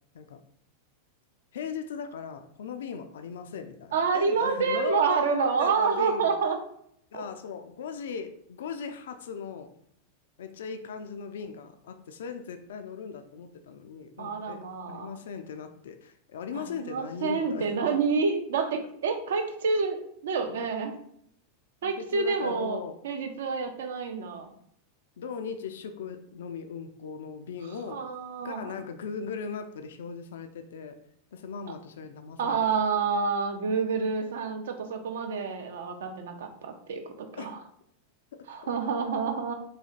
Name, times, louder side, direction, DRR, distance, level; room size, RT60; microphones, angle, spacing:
voice 1, 1.5-6.3 7.1-9.7 10.4-14.6 14.9-17.7 21.8-22.9 25.2-28.0 28.4-31.0 31.3-32.8 37.3-37.5 38.3-38.7, left 6 dB, 60° left, 8 dB, 0.3 m, -38 dB
voice 2, 3.9-6.6 7.1-7.2 14.2-15.1 16.5-20.9 21.8-24.5 27.9-28.7 32.4-37.6 38.5-39.5, right 5 dB, 60° right, 6 dB, 0.5 m, -28 dB
4.1 x 2.7 x 2.4 m, 0.69 s
figure-of-eight pair, 90°, 0 cm